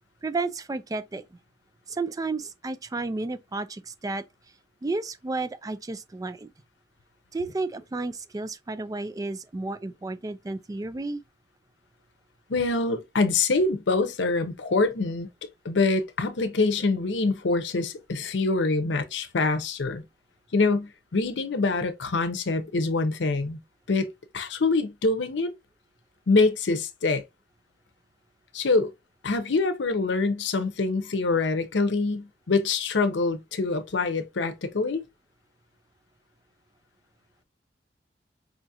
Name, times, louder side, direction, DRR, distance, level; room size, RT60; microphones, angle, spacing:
voice 1, 0.2-1.2 1.9-4.2 4.8-6.5 7.3-11.2, right 3 dB, 20° right, 0.3 m, -32 dB
voice 2, 12.5-15.3 15.6-20.0 20.5-23.6 23.9-24.1 24.3-25.5 26.3-27.2 28.5-28.9 29.2-35.0, left 3 dB, 80° left, 0.6 m, -25 dB
4.9 x 2.4 x 2.7 m
head